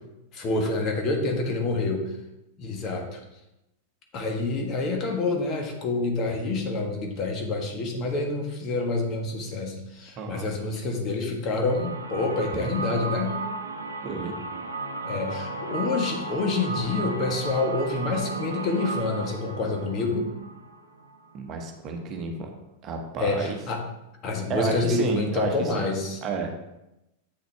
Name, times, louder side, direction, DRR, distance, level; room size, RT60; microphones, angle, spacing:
voice 1, 0.3-2.1 2.6-3.2 4.1-13.3 15.0-20.3 23.2-23.8 24.2-26.2, left 3 dB, 35° left, 2 dB, 1.5 m, -27 dB
voice 2, 10.2-10.5 14.0-14.3 21.3-22.5 22.8-23.6 24.5-25.9 26.2-26.5, right 4 dB, 30° right, 3 dB, 1.1 m, -31 dB
sound 1, 11.7-21.4, right 3 dB, 75° right, 0.8 m, -34 dB
8.1 x 6.4 x 3.5 m, 0.92 s
figure-of-eight pair, 90°, 0 cm